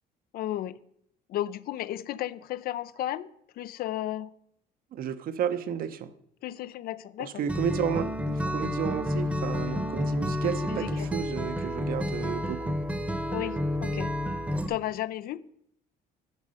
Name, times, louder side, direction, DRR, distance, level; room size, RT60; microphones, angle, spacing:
voice 1, 0.3-0.8 1.3-3.3 3.6-4.3 6.4-7.4 10.7-11.1 13.3-14.2 14.7-15.4, left 13 dB, 60° left, 0.4 m, -33 dB
voice 2, 4.9-6.1 7.2-12.8, right 8 dB, 60° right, 0.7 m, -32 dB
Acoustic guitar, 7.5-14.7, left 1 dB, 5° right, 0.9 m, -30 dB
9.6 x 5.4 x 6.4 m
cardioid pair, 110°, 17 cm